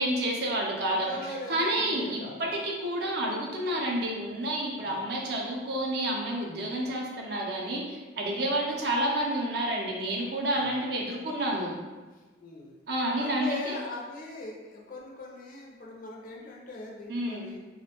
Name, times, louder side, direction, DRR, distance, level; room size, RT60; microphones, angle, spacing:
voice 1, 0.0-1.1 1.5-11.7 12.9-13.8 17.1-17.5, right 1 dB, 55° right, -1 dB, 0.4 m, -29 dB
voice 2, 0.8-2.5 4.8-5.1 10.6-10.8 12.1-12.7 13.2-17.6, left 2 dB, 45° left, -2 dB, 0.4 m, -40 dB
2.5 x 2.1 x 2.8 m, 1.3 s
head